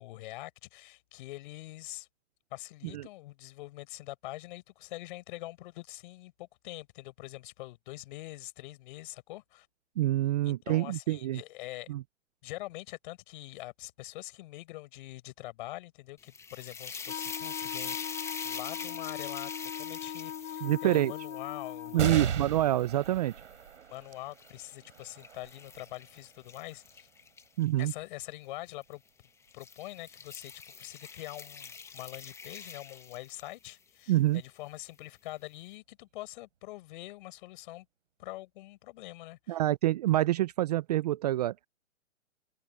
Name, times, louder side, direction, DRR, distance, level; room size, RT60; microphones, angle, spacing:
voice 1, 0.0-2.1 2.5-9.7 10.4-11.9 12.4-22.3 23.9-27.1 27.8-29.0 29.5-30.5 30.8-37.9 38.2-39.6, left 18 dB, 40° left, 5.9 m, -44 dB
voice 2, 10.0-11.4 11.9-12.0 20.6-21.1 21.9-23.3 27.6-27.9 34.1-34.4 39.5-41.5, right 14 dB, 35° right, 0.6 m, -26 dB
sound 1, 16.2-23.4 23.9-27.9 28.8-29.1 29.5-33.7, left 5 dB, 5° left, 1.1 m, -44 dB
Wind instrument woodwind instrument, 17.0-22.2, left 10 dB, 65° left, 1.5 m, -40 dB
sound 2, 22.0-28.9 29.5-29.6 30.7-31.3, right 8 dB, 70° right, 7.0 m, -38 dB
hypercardioid pair, 140°, 37 cm